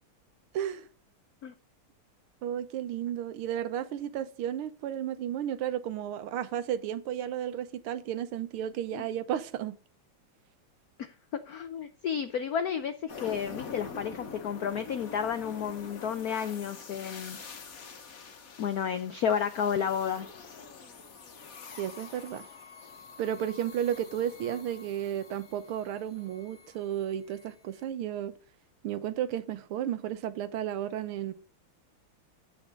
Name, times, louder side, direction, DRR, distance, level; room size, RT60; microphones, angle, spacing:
voice 1, 0.5-0.9 2.4-9.8 21.8-22.5 23.2-28.3 28.8-31.3, right 10 dB, 80° right, 1.7 m, -33 dB
voice 2, 11.5-17.4 18.6-20.3, left 8 dB, 75° left, 0.8 m, -31 dB
sound 1, 13.1-27.8, left 5 dB, 45° left, 1.5 m, -46 dB
9.2 x 7.2 x 5.1 m
omnidirectional pair, 2.4 m